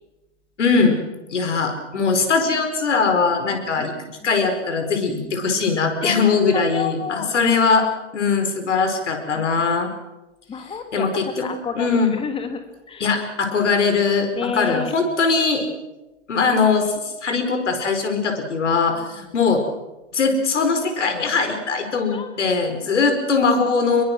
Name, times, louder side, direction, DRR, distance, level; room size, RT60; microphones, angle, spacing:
voice 1, 0.6-1.0 1.3-4.0 4.2-7.9 8.1-9.9 10.9-11.5 11.7-12.1 13.0-15.7 16.3-19.6 20.1-24.0, left 4 dB, 75° left, 6 dB, 4.9 m, -20 dB
voice 2, 6.0-7.5 9.3-9.4 10.5-13.1 14.4-14.9 18.9-19.3 22.1-22.5 22.9-23.1, left 5 dB, 15° left, 7 dB, 2.6 m, -31 dB
25.0 x 22.0 x 6.2 m, 1.0 s
hypercardioid pair, 120°, 36 cm